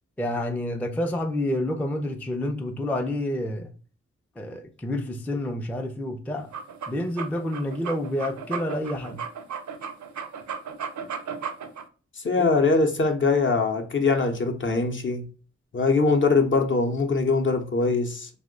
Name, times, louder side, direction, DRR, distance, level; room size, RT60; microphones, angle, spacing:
voice 1, 0.2-3.7 4.4-6.5 6.9-9.2 12.4-12.5, left 1 dB, 5° left, 0.4 m, -29 dB
sound 1, 6.4-11.8, right 6 dB, 75° right, 0.5 m, -35 dB
voice 2, 12.2-15.2 15.7-18.3, left 3 dB, 45° left, 0.6 m, -22 dB
2.9 x 2.1 x 3.7 m
cardioid pair, 55°, 29 cm